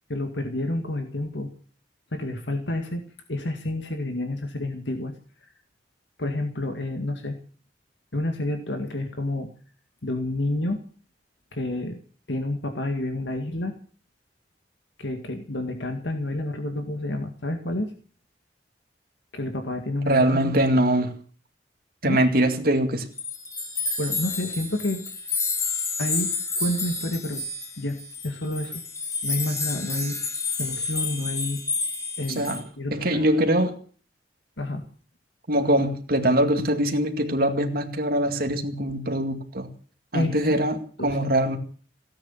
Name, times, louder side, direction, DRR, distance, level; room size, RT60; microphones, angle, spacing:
voice 1, 0.1-1.5 2.1-3.0 3.3-5.1 6.2-7.4 8.1-9.5 10.0-10.8 11.5-12.0 12.3-13.7 15.0-17.9 19.3-20.5 22.0-22.2 24.0-25.0 26.0-27.4 27.8-28.0 28.2-28.8 29.2-31.6 32.2-33.2 34.6-34.9 40.1-40.6 41.0-41.2, left 1 dB, 80° left, 6 dB, 2.0 m, -29 dB
voice 2, 20.1-21.1 22.0-23.1 32.4-32.6 32.9-33.7 35.5-39.7 40.1-41.6, right 1 dB, 55° right, 5 dB, 2.3 m, -22 dB
sound 1, 23.2-32.6, left 3 dB, 20° left, 2.5 m, -30 dB
17.0 x 9.9 x 8.5 m, 0.43 s
head